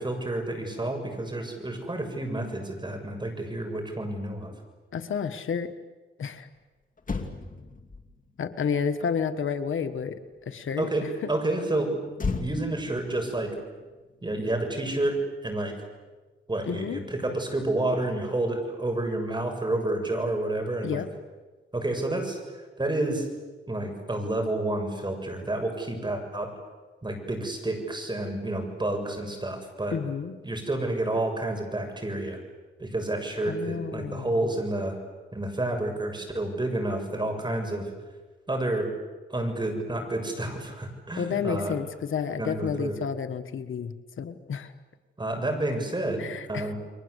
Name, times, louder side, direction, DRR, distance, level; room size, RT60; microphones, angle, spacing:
voice 1, 0.0-4.5 10.8-12.1 12.4-13.5 14.2-15.7 16.5-21.0 21.7-22.4 22.8-23.3 23.7-26.5 27.0-30.0 30.4-32.4 32.8-35.0 35.3-37.9 38.5-38.9 39.3-41.8 42.4-43.0 45.2-46.7, right 2 dB, 20° right, 3 dB, 6.9 m, -29 dB
voice 2, 4.9-5.7 6.2-6.5 8.4-11.3 16.7-17.0 20.8-21.1 29.9-30.4 33.4-34.5 41.2-44.7 46.2-46.7, left 6 dB, 80° left, 9 dB, 1.6 m, -31 dB
Motor vehicle (road), 6.6-6.7 7.0-10.5 12.1-14.7 15.0-15.3, left 4 dB, 40° left, 2.6 m, -37 dB
30.0 x 23.0 x 8.2 m, 1.2 s
wide cardioid pair, 90°, 20 cm